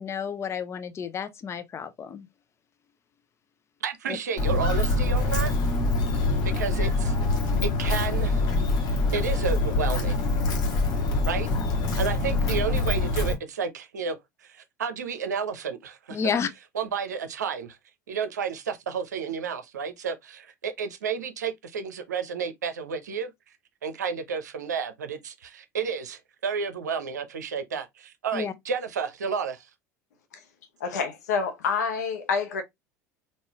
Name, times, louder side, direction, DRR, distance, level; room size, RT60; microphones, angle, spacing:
voice 1, 0.0-2.3 4.1-4.2 11.5-11.7 16.1-16.5 28.3-28.5, left 6 dB, 30° left, 0.5 m, -31 dB
voice 2, 3.8-5.5 6.6-7.1 7.6-8.4 8.9-10.2 11.3-11.6 12.0-16.2 16.7-17.8 18.1-23.3 23.8-29.7, right 6 dB, 80° right, 0.6 m, -31 dB
Walk footsteps, 4.4-13.3, left 2 dB, 50° left, 1.2 m, -24 dB
voice 3, 30.8-32.6, left 5 dB, 75° left, 0.8 m, -27 dB
3.8 x 2.5 x 2.9 m
hypercardioid pair, 75°, 9 cm